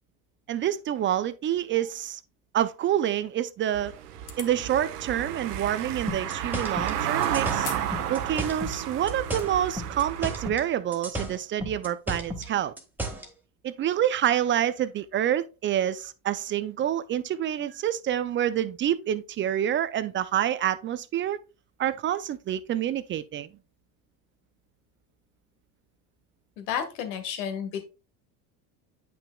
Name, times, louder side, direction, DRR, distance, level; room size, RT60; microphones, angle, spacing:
voice 1, 0.5-2.2 2.5-3.9 4.4-7.7 8.1-12.7 13.6-21.4 21.8-23.5, right 11 dB, 30° right, 0.3 m, -27 dB
Car passing by / Engine, 3.7-10.5, right 9 dB, 80° right, 1.0 m, -32 dB
sound 1, 4.2-4.6 5.7-5.8 7.6-7.9 8.3-8.4 9.1-9.4, left 8 dB, 40° left, 1.3 m, -40 dB
sound 2, 6.1-8.8 9.1-10.7 10.9-13.3, right 1 dB, 5° right, 1.7 m, -34 dB
voice 2, 26.6-27.8, left 8 dB, 75° left, 1.7 m, -31 dB
8.7 x 5.8 x 2.3 m
hypercardioid pair, 90°, 46 cm